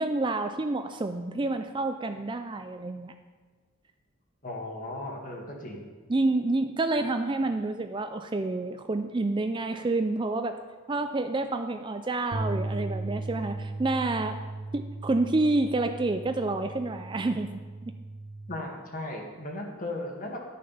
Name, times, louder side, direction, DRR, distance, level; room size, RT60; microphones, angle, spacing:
voice 1, 0.0-3.2 6.1-10.5 10.9-14.4 14.7-17.6, right 2 dB, 20° right, 7 dB, 0.4 m, -28 dB
voice 2, 4.4-5.8 18.5-20.4, left 1 dB, 40° left, 0 dB, 1.7 m, -36 dB
sound 1, 12.3-18.6, right 2 dB, 50° right, 0.8 m, -37 dB
12.0 x 6.5 x 5.5 m, 1.5 s
head